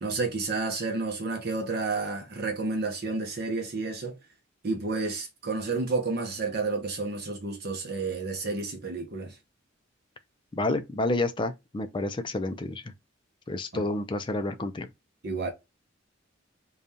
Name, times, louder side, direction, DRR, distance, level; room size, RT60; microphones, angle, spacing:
voice 1, 0.0-4.2 4.6-9.4 13.7-13.9 15.2-15.5, right 3 dB, 55° right, 0.8 m, -30 dB
voice 2, 10.5-12.8 13.5-14.9, left 2 dB, 25° left, 0.4 m, -29 dB
5.1 x 2.3 x 2.7 m
head